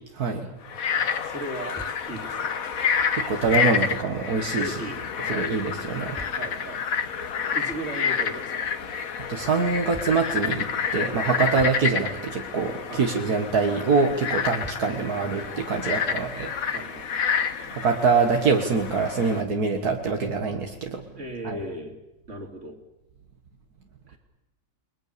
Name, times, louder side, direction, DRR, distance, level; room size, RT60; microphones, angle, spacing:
Frog, 0.7-19.4, left 7 dB, 65° left, 1.6 m, -29 dB
voice 1, 0.9-1.8 2.1-2.6 4.6-5.5 6.3-6.8 7.2-7.3 7.5-8.7 11.4-11.6 12.9-13.1 14.3-14.5 16.1-16.3 16.7-17.1 21.1-22.0 22.3-22.8 24.1-24.2, right 1 dB, 50° right, 4 dB, 3.4 m, -37 dB
sound 1, 1.8-2.0 2.6-2.7 3.4-5.3 6.2-6.5 7.7-7.8 9.1-9.2 9.9-10.3 11.6-11.8 13.4-13.5 14.6-15.0 15.7-15.8, right 1 dB, 10° right, 2.6 m, -42 dB
voice 2, 3.1-4.7 5.3-6.2 9.3-16.5 17.7-21.0 21.4-21.6, right 4 dB, 75° right, 3 dB, 2.1 m, -24 dB
30.0 x 21.0 x 6.9 m, 0.89 s
omnidirectional pair, 1.6 m